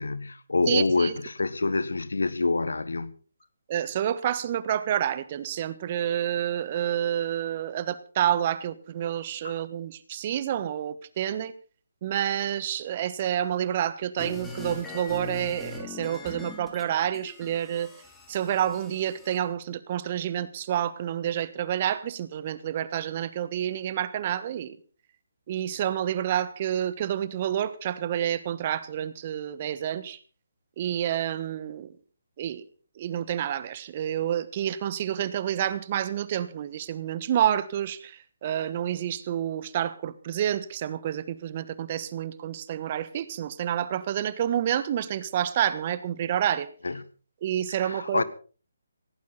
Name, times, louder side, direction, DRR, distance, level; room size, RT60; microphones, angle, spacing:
voice 1, 0.0-3.1 9.4-9.5 46.8-47.0 47.7-48.2, left 3 dB, 70° left, 1.4 m, -26 dB
voice 2, 0.7-1.1 3.7-11.5 12.0-17.9 18.3-24.8 25.5-30.2 30.8-31.9 32.4-32.6 33.0-46.7 47.4-48.2, right 10 dB, 35° right, 1.2 m, -29 dB
sound 1, 14.2-16.9 17.1-19.4, left 3 dB, 5° left, 3.2 m, -41 dB
18.5 x 17.0 x 4.1 m
figure-of-eight pair, 145°, 0 cm